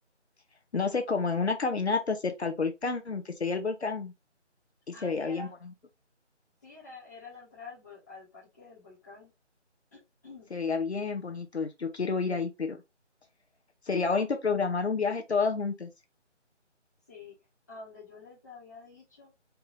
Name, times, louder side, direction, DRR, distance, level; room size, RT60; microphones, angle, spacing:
voice 1, 0.7-4.1 5.0-5.5 10.5-12.8 13.9-15.9, left 4 dB, 65° left, 0.9 m, -29 dB
voice 2, 4.9-5.5 6.6-9.3 9.9-10.5 17.1-17.3 17.7-19.3, left 3 dB, 15° left, 1.2 m, -48 dB
4.5 x 2.6 x 3.1 m
figure-of-eight pair, 165°, 36 cm